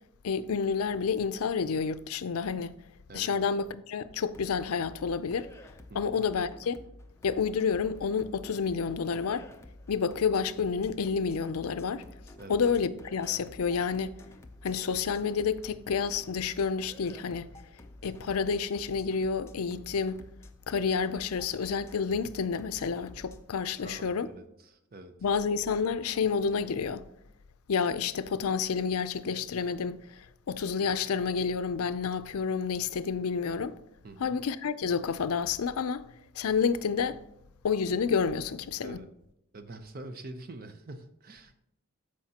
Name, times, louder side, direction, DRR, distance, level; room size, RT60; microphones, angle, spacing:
voice 1, 0.2-2.8 3.1-5.5 5.9-6.8 7.2-9.5 9.9-12.0 12.5-14.2 14.6-17.5 18.0-20.2 20.7-24.3 25.2-27.0 27.7-33.8 34.2-36.1 36.4-37.2 37.6-39.0, left 5 dB, 85° left, 0.5 m, -29 dB
sound 1, 4.3-23.4, left 1 dB, 10° left, 0.4 m, -51 dB
voice 2, 23.8-25.1 34.0-34.4 38.8-39.1 39.5-41.6, right 2 dB, 40° right, 0.7 m, -45 dB
13.0 x 4.9 x 2.8 m
head